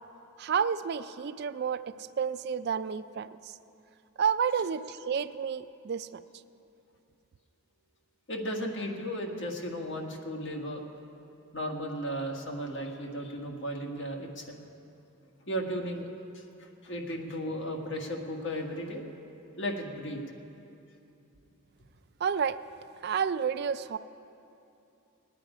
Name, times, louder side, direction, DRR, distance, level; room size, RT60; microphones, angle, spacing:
voice 1, 0.4-3.6 4.2-6.2 22.2-22.6 23.0-24.0, right 7 dB, 50° right, 13 dB, 0.3 m, -30 dB
voice 2, 8.3-10.8 11.5-14.6 15.5-16.1 16.3-19.0 19.6-20.2, equal, 60° left, 1 dB, 1.6 m, -35 dB
19.5 x 9.5 x 5.0 m, 2.7 s
head